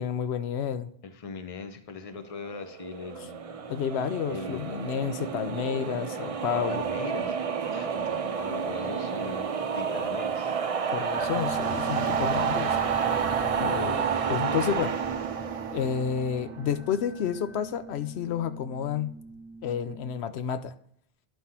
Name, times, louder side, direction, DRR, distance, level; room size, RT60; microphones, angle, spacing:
voice 1, 0.0-0.9 3.7-6.8 10.9-12.8 13.5-15.0 15.7-19.1 19.6-20.7, left 8 dB, 80° left, 11 dB, 0.8 m, -30 dB
voice 2, 1.0-3.8 4.3-4.8 6.5-7.4 7.6-9.5 9.7-10.6, left 5 dB, 35° left, 8 dB, 0.8 m, -41 dB
sound 1, 2.6-16.9, right 6 dB, 45° right, 0.5 m, -30 dB
sound 2, 11.1-20.4, right 2 dB, 20° left, 0.3 m, -42 dB
11.5 x 5.6 x 2.8 m, 0.67 s
omnidirectional pair, 1.1 m